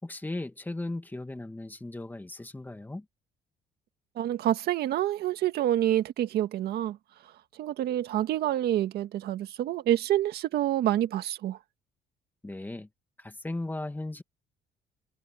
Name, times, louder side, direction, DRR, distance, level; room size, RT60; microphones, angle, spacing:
voice 1, 0.0-3.1 12.4-12.9 13.2-14.2, left 2 dB, 10° left, 2.3 m, -37 dB
voice 2, 4.2-7.0 7.2-11.6, right 12 dB, 70° right, 1.8 m, -27 dB
cardioid pair, 110°, 17 cm